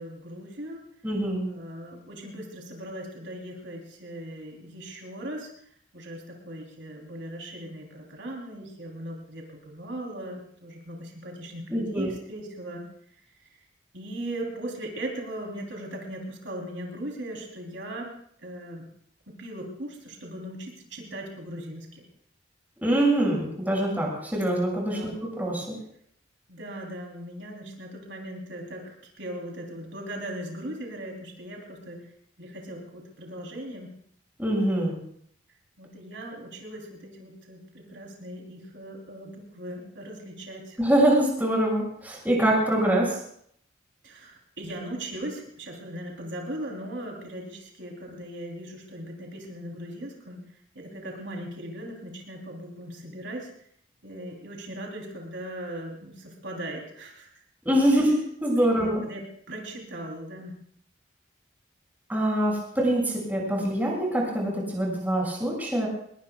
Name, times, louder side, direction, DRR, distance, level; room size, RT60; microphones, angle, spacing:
voice 1, 0.0-0.9 1.5-5.5 5.9-12.8 13.3-13.6 13.9-18.1 18.4-18.9 19.3-22.0 24.9-25.2 26.5-32.1 32.4-33.9 35.8-40.8 44.0-53.5 54.0-57.4 57.9-58.0 58.6-60.6, right 1 dB, 70° right, -1 dB, 3.5 m, -39 dB
voice 2, 1.0-1.5 11.7-12.1 22.8-25.1 25.4-25.8 34.4-34.9 40.8-43.2 57.6-58.1 58.4-59.0 62.1-65.9, right 1 dB, 10° right, -3 dB, 6.5 m, -24 dB
23.5 x 21.0 x 2.4 m, 0.65 s
head